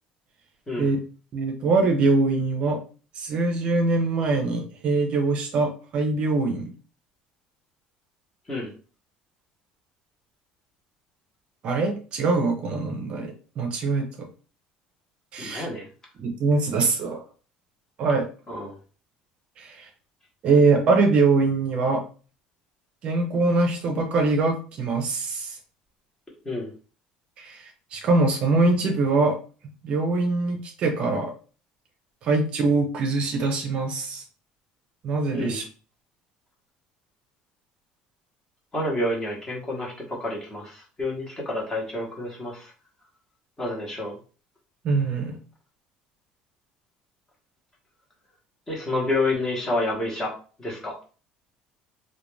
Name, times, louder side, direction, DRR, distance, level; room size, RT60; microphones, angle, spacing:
voice 1, 1.3-2.8 3.2-6.7 11.6-14.3 15.3-15.7 16.2-17.2 18.0-18.3 19.6-19.9 20.4-22.0 23.0-25.6 27.4-29.4 29.8-31.3 32.2-34.2 35.0-35.6 44.8-45.4, right 3 dB, 40° right, 3 dB, 0.5 m, -23 dB
voice 2, 15.4-15.9 18.5-18.7 26.4-26.7 35.3-35.6 38.7-42.7 43.6-44.2 48.7-50.3 50.6-50.9, left 2 dB, 15° left, -2 dB, 0.9 m, -29 dB
2.4 x 2.2 x 3.1 m, 0.38 s
cardioid pair, 160°, 3 cm